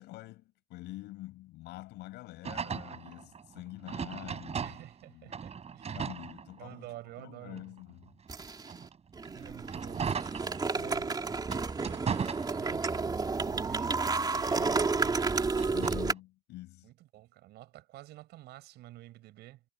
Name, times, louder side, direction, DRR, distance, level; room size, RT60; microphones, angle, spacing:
voice 1, 0.0-5.3 5.9-8.2 10.7-11.1 14.5-14.9 15.7-16.9, left 17 dB, 85° left, 6.6 m, -46 dB
sound 1, 2.4-5.0 5.3-7.0 7.5-11.0 11.4-13.1 13.5-16.1, right 6 dB, 40° right, 7.4 m, -38 dB
voice 2, 4.6-6.1 6.6-7.6 9.3-10.5 10.7-14.1 14.3-15.2 16.8-19.6, right 16 dB, 80° right, 6.5 m, -50 dB
sound 2, 8.3-8.8 9.2-16.1, right 4 dB, 25° right, 3.3 m, -31 dB
cardioid pair, 110°, 17 cm